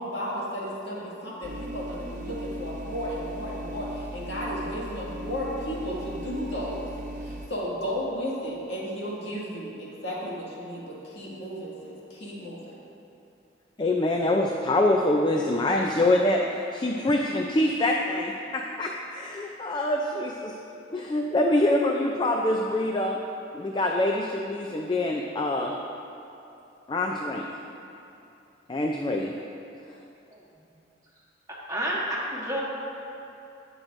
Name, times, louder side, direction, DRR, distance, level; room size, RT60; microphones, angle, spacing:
voice 1, 0.0-6.9 7.2-12.7, equal, 65° left, -6 dB, 2.1 m, -34 dB
sound 1, 1.4-7.5, equal, 45° right, 0.8 m, -37 dB
voice 2, 13.8-20.6 20.9-23.2 23.5-25.8 26.9-27.5 28.7-29.3, left 1 dB, 25° left, 1 dB, 0.4 m, -25 dB
voice 3, 31.5-32.6, right 1 dB, 20° right, -5 dB, 1.3 m, -30 dB
17.5 x 6.3 x 2.6 m, 2.8 s
head